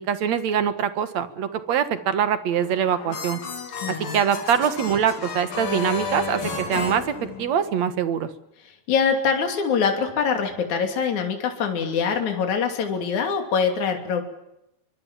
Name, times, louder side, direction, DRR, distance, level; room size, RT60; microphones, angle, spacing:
voice 1, 0.0-3.4 3.9-8.3, right 8 dB, 60° right, 11 dB, 2.6 m, -24 dB
sound 1, 2.6-7.9, left 4 dB, 90° left, 5.2 m, -32 dB
voice 2, 3.8-4.2 8.9-14.2, left 6 dB, 60° left, 4 dB, 4.1 m, -24 dB
24.5 x 24.0 x 7.5 m, 0.85 s
omnidirectional pair, 3.9 m